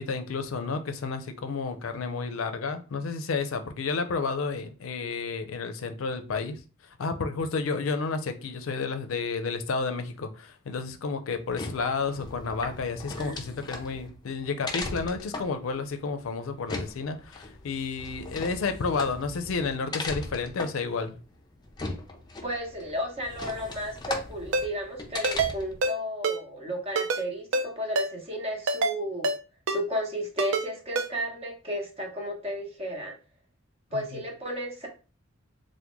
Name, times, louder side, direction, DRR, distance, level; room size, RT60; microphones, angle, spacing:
voice 1, 0.0-6.6 7.0-21.2 33.9-34.2, left 4 dB, 85° left, 0.4 m, -31 dB
sound 1, 11.3-25.8, left 3 dB, 20° left, 0.4 m, -38 dB
voice 2, 22.4-29.3 29.7-33.1 33.9-34.9, equal, 30° right, 0.8 m, -33 dB
Ringtone, 24.5-24.7 25.2-25.5 25.8-25.9 26.2-26.4 27.0-27.2 27.5-27.7 28.0-28.1 28.7-28.9 29.2-29.4 29.7-29.8 30.4-30.6 31.0-31.1, right 3 dB, 65° right, 0.4 m, -26 dB
3.5 x 2.1 x 3.0 m
head